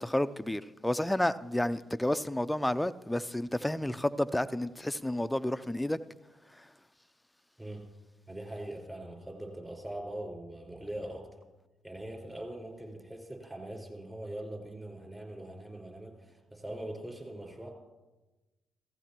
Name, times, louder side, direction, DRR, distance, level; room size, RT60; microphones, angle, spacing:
voice 1, 0.0-6.0 6.5-6.7, left 1 dB, 10° left, 0.5 m, -31 dB
voice 2, 8.3-11.3 11.8-17.7, right 1 dB, 15° right, 4.7 m, -42 dB
17.0 x 14.5 x 3.0 m
hypercardioid pair, 50°, 0 cm